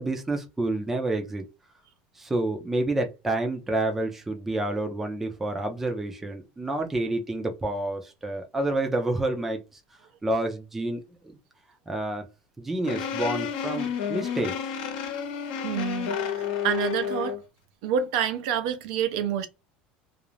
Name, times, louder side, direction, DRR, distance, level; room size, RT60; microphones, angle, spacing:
voice 1, 0.0-1.5 2.2-9.6 10.2-11.4 11.9-12.2 12.6-14.5, right 2 dB, 5° right, 0.5 m, -29 dB
sound 1, 12.8-17.4, left 8 dB, 90° left, 0.8 m, -30 dB
voice 2, 15.6-17.4 17.8-19.5, right 8 dB, 70° right, 0.6 m, -28 dB
2.4 x 2.0 x 3.0 m
cardioid pair, 175°, 4 cm